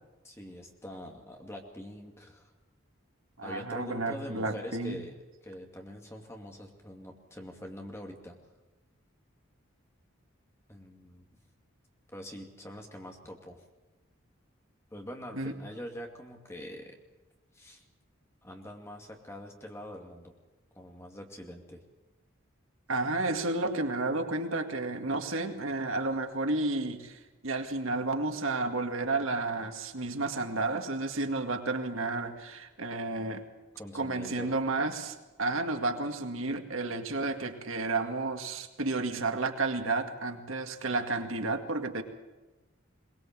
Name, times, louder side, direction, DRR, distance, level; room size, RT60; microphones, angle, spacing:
voice 1, 0.2-2.5 3.4-5.1 5.4-8.4 10.7-11.3 12.1-13.6 14.9-17.0 17.5-17.9 18.4-20.3 20.7-21.8 33.7-34.5, equal, 15° left, 2 dB, 2.4 m, -44 dB
voice 2, 3.4-5.0 15.3-15.5 22.9-33.4 33.9-42.0, right 3 dB, 80° right, 5 dB, 2.0 m, -31 dB
22.0 x 20.0 x 7.5 m, 1.1 s
head